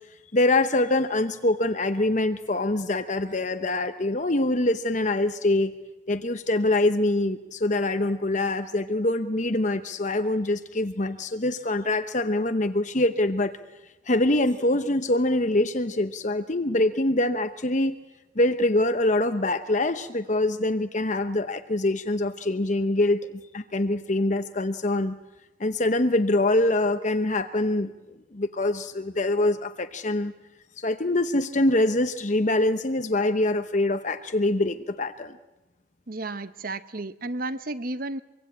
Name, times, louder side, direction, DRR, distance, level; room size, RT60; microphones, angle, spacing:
voice 1, 0.3-5.7 6.1-13.5 14.1-18.0 18.4-25.2 25.6-27.9 28.3-30.3 30.8-35.4, left 2 dB, 35° left, 8 dB, 0.9 m, -24 dB
voice 2, 36.1-38.2, right 2 dB, 45° right, 14 dB, 0.9 m, -32 dB
24.5 x 23.5 x 8.8 m, 1.0 s
head